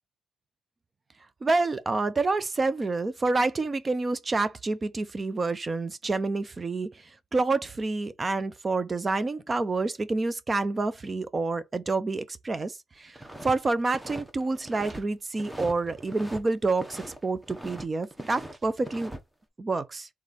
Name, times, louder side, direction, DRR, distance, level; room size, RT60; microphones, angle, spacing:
voice 1, 1.4-19.2 19.6-20.1, right 3 dB, 30° right, 0.5 m, -28 dB
sound 1, 13.2-13.6 13.8-15.0 15.3-16.4 16.7-17.9 18.1-19.2, right 1 dB, 10° right, 0.9 m, -41 dB
3.6 x 3.2 x 4.1 m
cardioid pair, 90°, 0 cm